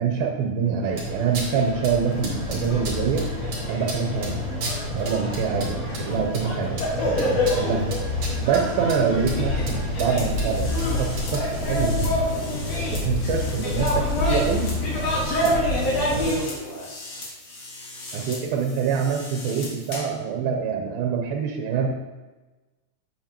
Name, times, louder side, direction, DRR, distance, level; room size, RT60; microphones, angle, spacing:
voice 1, 0.0-3.3 3.7-4.4 4.9-7.9 8.4-12.2 12.9-14.7 15.4-15.6 16.1-16.3 18.1-21.9, right 6 dB, 85° right, 2 dB, 2.5 m, -25 dB
sound 1, 0.8-11.7, right 1 dB, 50° right, 2.6 m, -34 dB
sound 2, 0.9-16.3, left 1 dB, 55° left, 2.4 m, -26 dB
sound 3, 10.2-20.2, left 1 dB, 75° left, 0.9 m, -37 dB
8.0 x 7.3 x 2.9 m, 1.2 s
omnidirectional pair, 4.1 m